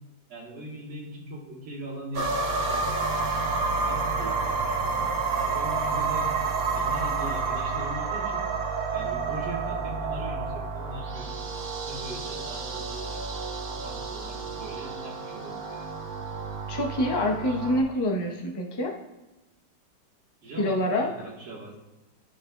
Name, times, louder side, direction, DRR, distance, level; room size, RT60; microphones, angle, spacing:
voice 1, 0.3-3.4 3.8-5.1 5.5-6.3 6.8-8.5 8.9-13.2 13.7-16.0 20.4-21.8, right 1 dB, 85° right, -4 dB, 2.3 m, -40 dB
sound 1, 2.1-17.8, right 4 dB, 65° right, 1.1 m, -30 dB
voice 2, 16.7-18.9 20.6-21.1, left 1 dB, 30° left, 1 dB, 0.4 m, -26 dB
12.0 x 4.6 x 2.2 m, 1.0 s
omnidirectional pair, 1.9 m